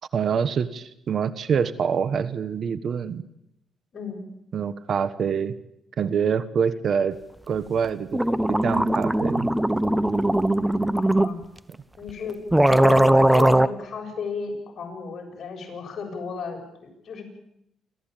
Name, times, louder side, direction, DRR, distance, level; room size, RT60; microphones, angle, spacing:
voice 1, 0.1-3.2 4.5-5.5 6.0-7.2 7.5-8.2 8.5-9.5, right 7 dB, 55° right, 15 dB, 1.2 m, -25 dB
voice 2, 3.9-4.3 10.9-11.4 12.0-17.2, left 5 dB, 50° left, 2 dB, 7.9 m, -34 dB
sound 1, 7.8-7.9 8.1-11.3 12.1-12.2 12.5-13.7, right 1 dB, 5° right, 0.9 m, -19 dB
28.5 x 13.5 x 9.0 m, 0.82 s
cardioid pair, 90°, 0 cm